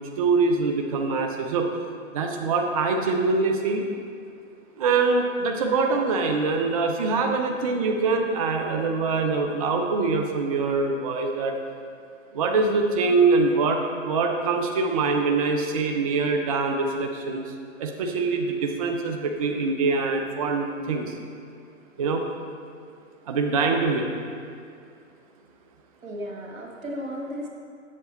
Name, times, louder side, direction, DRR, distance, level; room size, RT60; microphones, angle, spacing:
voice 1, 0.2-1.7 2.1-3.9 4.8-11.5 12.3-21.1 22.0-22.2 23.3-24.1, right 4 dB, 30° right, 2 dB, 0.4 m, -24 dB
voice 2, 26.0-27.5, equal, 85° right, -1 dB, 1.9 m, -34 dB
7.5 x 7.3 x 4.0 m, 2.3 s
hypercardioid pair, 135°, 40 cm